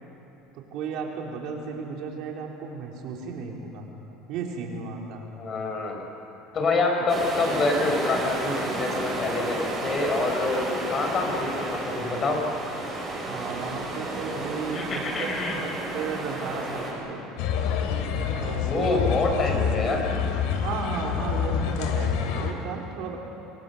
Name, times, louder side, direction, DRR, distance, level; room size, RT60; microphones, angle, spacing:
voice 1, 0.5-3.9 4.3-5.2 13.2-17.2 18.3-19.0 20.6-23.2, right 5 dB, 60° right, 0 dB, 4.0 m, -34 dB
voice 2, 5.4-6.1 6.5-12.4 14.7-15.6 18.6-20.0, left 3 dB, 30° left, 3 dB, 4.8 m, -26 dB
sound 1, 7.1-16.9, right 2 dB, 20° right, 7.7 m, -32 dB
sound 2, 17.4-22.5, left 7 dB, 70° left, 2.8 m, -27 dB
27.0 x 23.0 x 6.9 m, 3.0 s
supercardioid pair, 125°, 0 cm